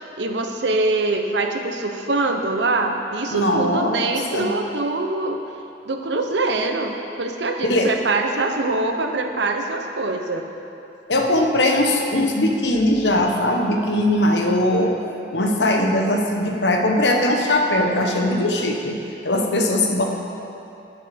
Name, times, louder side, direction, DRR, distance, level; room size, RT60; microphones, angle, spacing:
voice 1, 0.2-5.4 5.8-10.4, right 2 dB, 85° right, 4 dB, 0.9 m, -23 dB
voice 2, 3.3-4.0 4.3-4.5 7.6-8.0 11.1-14.9 15.3-19.0 19.2-20.0, left 1 dB, 85° left, 2 dB, 1.2 m, -20 dB
11.0 x 6.5 x 6.8 m, 2.8 s
head